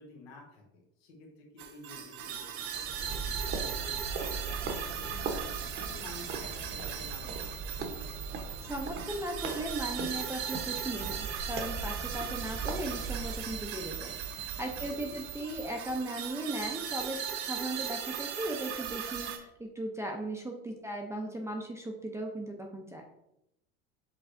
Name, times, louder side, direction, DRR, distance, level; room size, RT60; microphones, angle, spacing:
voice 1, 0.0-5.4 5.8-7.9 14.8-15.2, left 2 dB, 80° left, -1 dB, 1.3 m, -51 dB
sound 1, 1.6-19.4, right 8 dB, 70° right, 0.7 m, -38 dB
sound 2, 2.8-13.7, right 3 dB, 45° right, 0.9 m, -39 dB
voice 2, 8.7-23.0, right 1 dB, 10° right, 1 dB, 0.5 m, -37 dB
5.6 x 3.2 x 2.6 m, 0.84 s
supercardioid pair, 100°, 29 cm